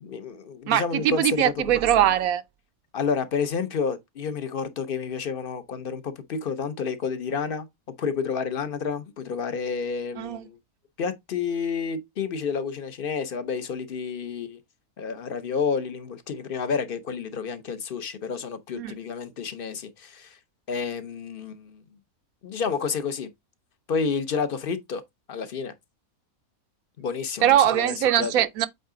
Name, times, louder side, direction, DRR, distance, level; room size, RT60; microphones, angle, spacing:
voice 1, 0.0-1.5 2.9-7.7 8.0-10.6 11.0-14.6 15.0-20.4 20.7-21.8 22.4-23.3 23.9-25.0 25.3-25.7 27.0-28.3, left 5 dB, 50° left, 0.8 m, -30 dB
voice 2, 0.7-2.4 10.2-10.4 18.7-18.9 27.4-28.7, right 11 dB, 75° right, 1.0 m, -21 dB
8.0 x 3.6 x 3.8 m
omnidirectional pair, 1.5 m